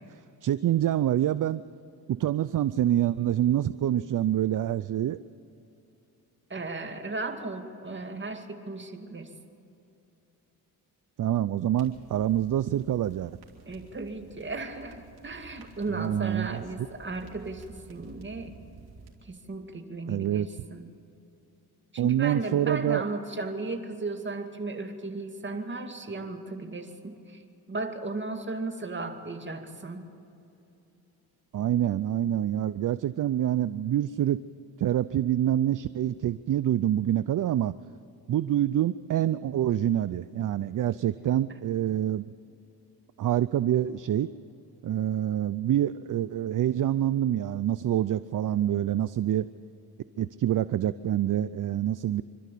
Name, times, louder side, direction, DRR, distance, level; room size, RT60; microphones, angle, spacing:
voice 1, 0.4-1.6 2.1-5.2 11.2-13.4 15.9-16.6 20.1-20.5 22.0-23.0 31.5-34.4 34.8-37.7 38.3-42.3 43.2-44.3 44.8-49.5 50.2-52.2, right 11 dB, 55° right, 15 dB, 0.5 m, -26 dB
voice 2, 6.5-9.3 13.7-18.5 19.2-20.9 21.9-27.4 27.7-30.0, right 3 dB, 30° right, 5 dB, 2.3 m, -35 dB
sound 1, 11.7-19.1, right 3 dB, 75° right, 3.1 m, -51 dB
26.0 x 12.5 x 8.4 m, 2.8 s
cardioid pair, 80°, 38 cm